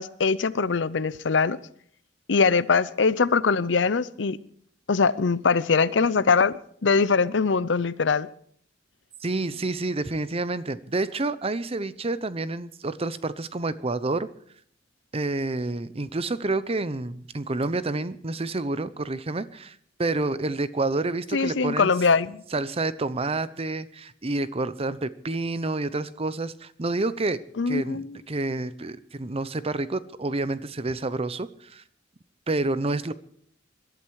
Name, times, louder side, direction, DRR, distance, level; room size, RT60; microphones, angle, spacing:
voice 1, 0.0-1.6 2.3-4.4 4.9-6.5 6.8-8.3 21.3-22.4 27.6-28.2, left 5 dB, 70° left, 18 dB, 0.6 m, -22 dB
voice 2, 9.2-14.3 15.1-21.9 22.5-27.4 27.7-31.8 32.5-33.1, right 2 dB, 30° right, 15 dB, 0.7 m, -29 dB
22.0 x 12.0 x 4.8 m, 0.62 s
head